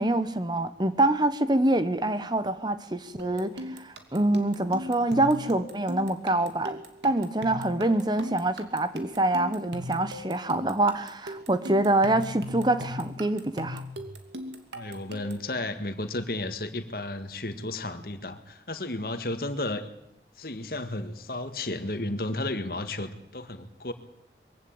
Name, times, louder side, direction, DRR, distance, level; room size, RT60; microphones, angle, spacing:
voice 1, 0.0-6.8 7.0-13.8, right 1 dB, 25° right, 1.0 m, -25 dB
sound 1, 3.2-15.5, left 1 dB, 80° right, 2.5 m, -39 dB
voice 2, 14.7-19.9 20.4-23.9, left 2 dB, 55° left, 1.8 m, -33 dB
22.5 x 16.0 x 8.8 m
head